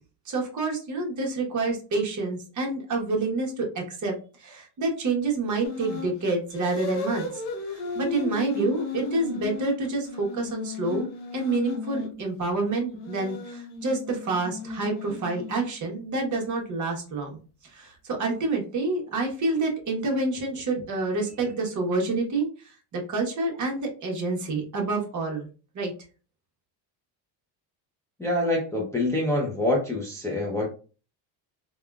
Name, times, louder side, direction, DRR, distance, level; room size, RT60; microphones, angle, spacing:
voice 1, 0.2-4.1 4.4-7.4 7.7-25.5 25.7-25.9, right 3 dB, 40° right, 1 dB, 1.0 m, -28 dB
sound 1, 5.6-6.1 6.5-12.2 12.9-15.8, left 4 dB, 75° left, 0.9 m, -34 dB
voice 2, 28.2-30.7, left 1 dB, 5° left, -3 dB, 0.6 m, -25 dB
3.4 x 2.3 x 2.3 m, 0.36 s
cardioid pair, 120°, 48 cm